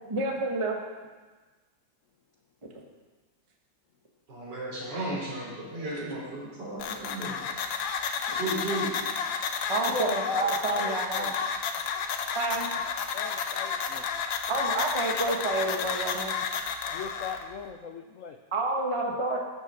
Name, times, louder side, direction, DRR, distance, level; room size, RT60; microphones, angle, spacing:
voice 1, 0.0-0.8 8.3-8.4 9.7-11.3 12.3-12.7 14.5-16.3 18.5-19.4, right 2 dB, 20° right, 0 dB, 1.3 m, -29 dB
voice 2, 4.3-7.4 8.3-9.0, right 1 dB, 65° right, -5 dB, 4.4 m, -34 dB
sound 1, 6.8-17.4, left 6 dB, 80° left, 1.6 m, -31 dB
voice 3, 9.8-11.3 13.1-14.0 16.9-18.4, left 5 dB, 65° left, 5 dB, 0.8 m, -37 dB
14.0 x 6.6 x 6.3 m, 1.3 s
omnidirectional pair, 2.0 m